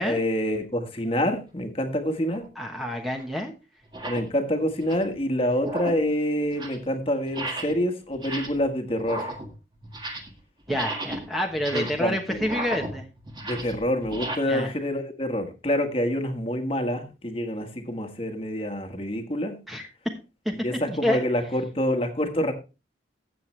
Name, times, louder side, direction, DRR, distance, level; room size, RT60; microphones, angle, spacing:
voice 1, 0.0-2.5 4.1-9.3 11.7-12.4 13.4-19.6 20.6-22.5, left 1 dB, 30° left, 6 dB, 1.5 m, -27 dB
sound 1, 2.3-2.5 3.2-3.3 3.8-4.3 4.7-5.2 5.6-6.1 6.4-6.9 7.3-7.8 8.1-8.7 9.0-10.4 10.7-14.4, right 1 dB, 25° right, 1.7 m, -35 dB
voice 2, 2.6-3.5 10.7-13.0 14.4-14.7 19.7-19.9 20.4-20.5 20.9-21.2, equal, ahead, 2 dB, 1.1 m, -28 dB
13.5 x 7.9 x 3.3 m, 0.30 s
head